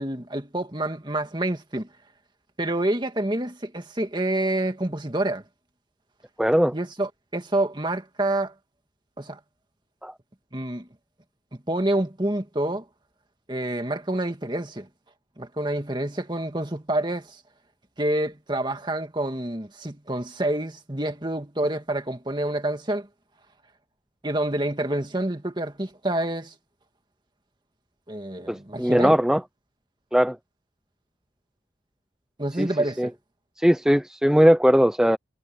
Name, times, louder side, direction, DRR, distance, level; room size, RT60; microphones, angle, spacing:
voice 1, 0.0-1.9 2.6-5.4 6.7-8.5 9.2-9.4 10.5-10.9 11.7-12.8 13.5-14.9 15.4-17.4 18.0-23.1 24.2-26.5 28.1-29.2 32.4-33.1, right 1 dB, 25° right, 2.1 m, -27 dB
voice 2, 6.4-6.7 10.0-10.1 28.5-29.4 30.1-30.4 32.6-32.7 33.0-33.1 33.6-35.2, equal, 5° right, 0.6 m, -19 dB
head